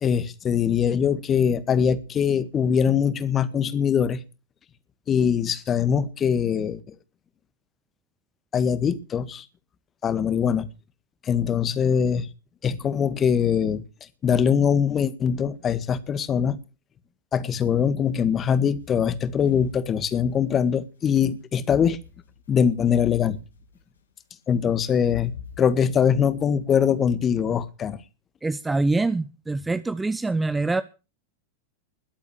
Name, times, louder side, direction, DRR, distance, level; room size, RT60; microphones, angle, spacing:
voice 1, 0.0-4.2 5.1-6.8 8.5-9.4 10.0-10.7 11.2-12.3 12.6-13.8 14.2-16.6 17.3-22.0 22.5-23.4 24.5-25.3 25.6-28.0, left 7 dB, 25° left, 1.8 m, -22 dB
sound 1, 18.7-20.7 21.5-24.0 25.0-25.7, left 8 dB, 70° left, 2.1 m, -44 dB
voice 2, 28.4-30.8, right 3 dB, 10° right, 0.7 m, -24 dB
21.0 x 8.4 x 6.5 m
figure-of-eight pair, 90°, 0 cm